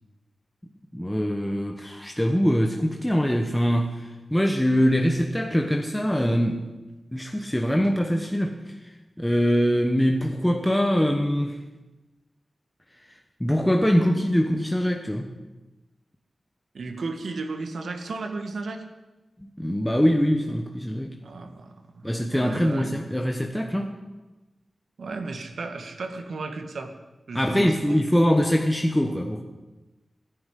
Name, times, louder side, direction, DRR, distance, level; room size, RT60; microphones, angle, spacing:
voice 1, 0.9-6.7 7.1-8.7 9.2-11.6 13.4-15.3 19.4-21.2 22.0-23.9 27.3-29.4, equal, 5° left, 2 dB, 1.1 m, -23 dB
voice 2, 16.7-18.8 21.2-22.9 25.0-26.9 27.3-28.0, right 3 dB, 80° right, 5 dB, 1.8 m, -34 dB
15.0 x 10.5 x 8.2 m, 1.1 s
wide cardioid pair, 135°, 0 cm